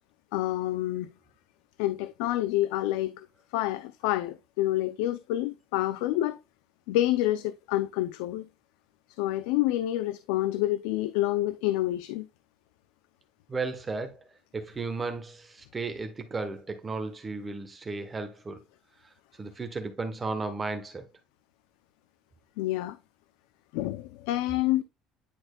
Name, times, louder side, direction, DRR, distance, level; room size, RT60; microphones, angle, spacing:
voice 1, 0.3-1.1 1.8-3.3 3.5-6.4 6.9-8.4 9.2-12.3 22.6-23.0 23.7-24.8, left 15 dB, 90° left, 0.4 m, -28 dB
voice 2, 13.5-14.2 14.5-18.6 19.4-21.1, right 3 dB, 20° right, 1.0 m, -34 dB
10.0 x 4.4 x 2.3 m
cardioid pair, 130°, 0 cm